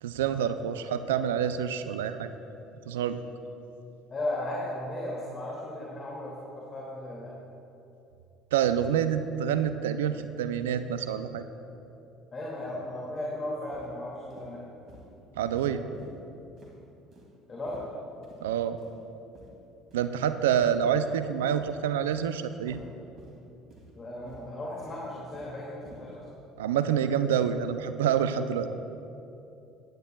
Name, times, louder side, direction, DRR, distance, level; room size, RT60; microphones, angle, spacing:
voice 1, 0.0-2.3 2.9-3.2 8.5-11.4 15.4-15.9 18.4-18.8 19.9-22.8 26.6-28.7, right 9 dB, 80° right, 11 dB, 0.4 m, -27 dB
voice 2, 4.1-7.3 12.3-14.6 17.5-17.8 24.0-26.2, left 1 dB, 35° left, -5 dB, 2.2 m, -36 dB
sound 1, 13.7-13.9 14.3-14.5 14.9-15.1 15.4-15.5 15.9-16.2 16.6-16.7 17.1-17.3 17.7-17.9 18.2-18.4 18.8-19.0 19.3-19.5 19.9-20.1 20.5-20.6 21.0-21.3 21.6-21.7 22.1-22.3 22.7-22.8 23.2-23.4 23.7-23.9 24.3-24.5 24.8-25.5 25.8-26.0, right 1 dB, 50° right, 2.4 m, -52 dB
15.5 x 10.5 x 2.3 m, 2.9 s
hypercardioid pair, 60°, 0 cm